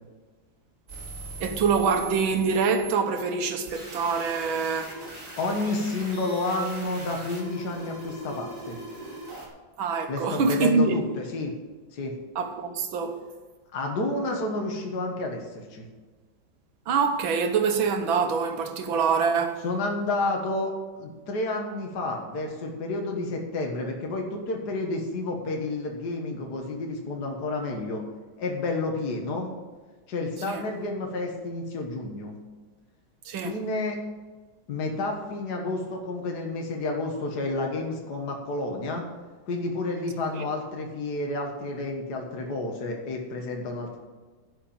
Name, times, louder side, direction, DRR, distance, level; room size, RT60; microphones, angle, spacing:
sound 1, 0.9-2.9 3.7-9.5, right 2 dB, 40° right, 3.5 m, -40 dB
voice 1, 1.4-5.0 9.8-11.0 12.4-13.2 16.9-19.6 30.5-30.6 33.3-33.6 40.3-40.4, right 5 dB, 85° right, 1.9 m, -25 dB
voice 2, 5.4-8.8 10.1-11.5 11.9-12.1 13.7-15.9 19.6-28.0 28.4-29.5 30.1-32.4 33.4-34.0 34.7-39.0 39.5-44.0, left 2 dB, 55° left, 1.9 m, -30 dB
11.0 x 5.9 x 8.7 m
omnidirectional pair, 2.1 m